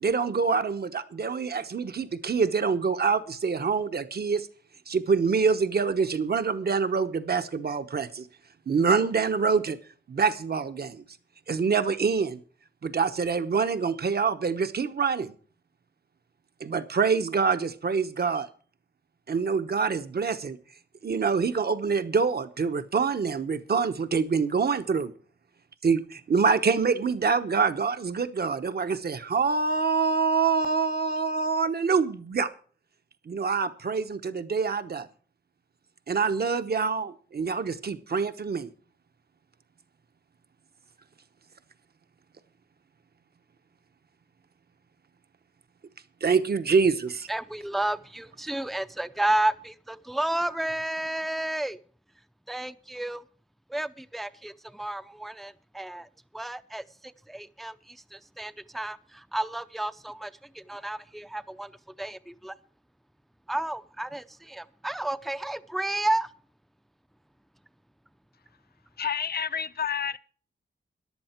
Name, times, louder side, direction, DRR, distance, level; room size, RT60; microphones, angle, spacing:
voice 1, 0.0-4.5 4.9-8.3 8.7-9.8 10.1-11.0 11.5-12.4 12.8-15.3 16.6-18.5 19.3-20.6 21.0-25.1 25.8-32.5 33.3-35.1 36.1-38.7 46.2-47.3, right 5 dB, 55° right, 1.0 m, -25 dB
voice 2, 47.3-51.8 52.5-53.2 53.7-56.1 56.3-62.2 62.4-62.5 63.5-66.3, right 1 dB, ahead, 0.5 m, -31 dB
voice 3, 69.0-70.2, left 7 dB, 55° left, 0.6 m, -29 dB
14.0 x 11.0 x 4.5 m
wide cardioid pair, 120°, 20 cm